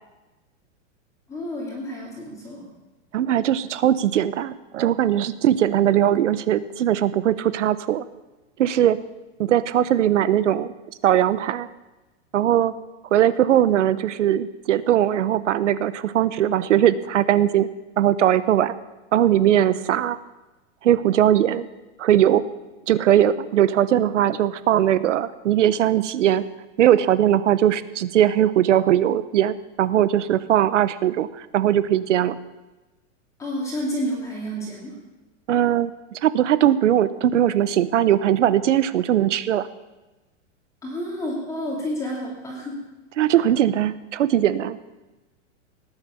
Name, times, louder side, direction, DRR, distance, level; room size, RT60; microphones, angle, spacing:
voice 1, 1.3-2.7 33.4-35.0 40.8-42.8, equal, 10° left, -3 dB, 2.6 m, -30 dB
voice 2, 3.1-8.0 8.6-9.0 9.4-10.7 11.0-11.7 12.3-12.7 13.1-17.7 18.0-18.7 19.1-20.2 20.8-21.7 22.0-22.5 22.9-26.5 26.8-32.4 35.5-39.7 43.2-44.8, right 11 dB, 75° right, 15 dB, 1.1 m, -20 dB
18.5 x 10.0 x 7.1 m, 1.1 s
supercardioid pair, 180°, 37 cm